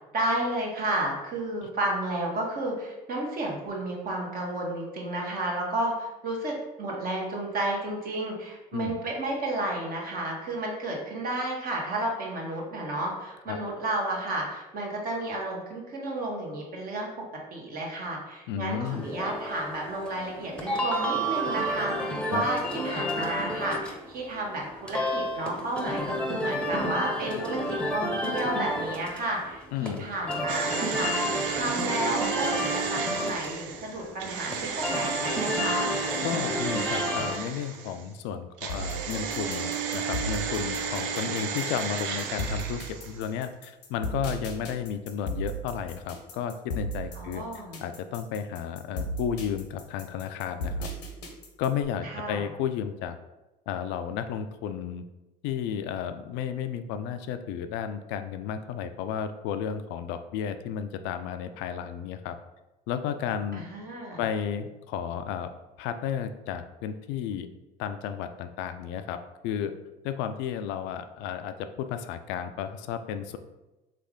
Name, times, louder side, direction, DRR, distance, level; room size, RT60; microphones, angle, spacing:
voice 1, 0.1-17.1 17.5-35.9 47.1-47.8 52.0-52.5 63.5-64.2, right 1 dB, 45° right, -1 dB, 1.4 m, -32 dB
voice 2, 18.5-19.0 22.3-22.4 29.7-30.1 36.2-47.4 47.8-50.9 51.6-53.2 53.7-55.0 55.4-62.4 62.9-63.6 64.2-65.5 65.8-67.5 67.8-69.7 70.0-73.4, left 8 dB, 60° left, 9 dB, 0.4 m, -33 dB
sound 1, 18.8-37.4, equal, 5° left, 0.9 m, -31 dB
sound 2, 30.5-38.1 38.6-43.3 43.5-43.6, right 6 dB, 65° right, 0.5 m, -33 dB
sound 3, 38.7-51.8, right 1 dB, 85° left, 0.8 m, -35 dB
3.7 x 3.3 x 3.6 m, 1.0 s
hypercardioid pair, 65°, 21 cm